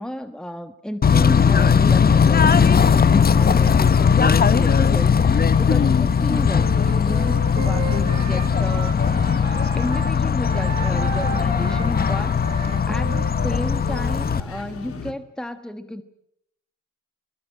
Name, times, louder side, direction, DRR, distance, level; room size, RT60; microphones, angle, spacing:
voice 1, 0.0-16.0, equal, ahead, 9 dB, 1.3 m, -33 dB
Bird / Train, 1.0-14.4, left 6 dB, 30° left, 1.0 m, -18 dB
sound 1, 3.5-15.1, left 5 dB, 50° left, 2.0 m, -39 dB
Wind instrument woodwind instrument, 6.6-10.1 10.5-14.2, right 9 dB, 75° right, 2.8 m, -35 dB
22.0 x 21.5 x 8.8 m, 0.76 s
cardioid pair, 90°, 30 cm